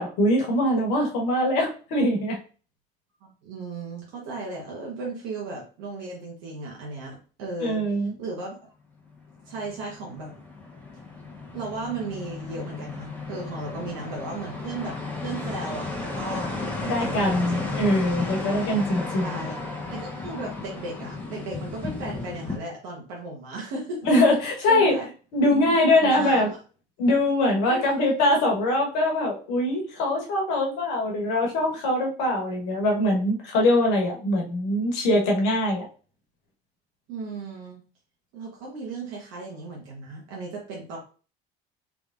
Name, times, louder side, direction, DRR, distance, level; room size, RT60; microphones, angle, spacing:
voice 1, 0.0-2.4 7.6-8.1 16.8-19.3 24.1-25.0 25.3-26.5 27.0-35.8, left 1 dB, 65° left, 0 dB, 1.5 m, -22 dB
voice 2, 3.4-7.8 8.2-8.6 9.5-10.3 11.5-14.9 15.2-16.5 16.8-17.7 19.2-19.6 19.9-24.0 24.7-25.0 25.5-25.6 26.0-26.4 27.7-28.1 37.1-37.8 38.3-41.0, right 3 dB, 65° right, -2 dB, 1.3 m, -35 dB
sound 1, 9.1-22.6, left 3 dB, 5° left, 1.2 m, -34 dB
3.6 x 3.5 x 2.6 m, 0.37 s
hypercardioid pair, 60°, 29 cm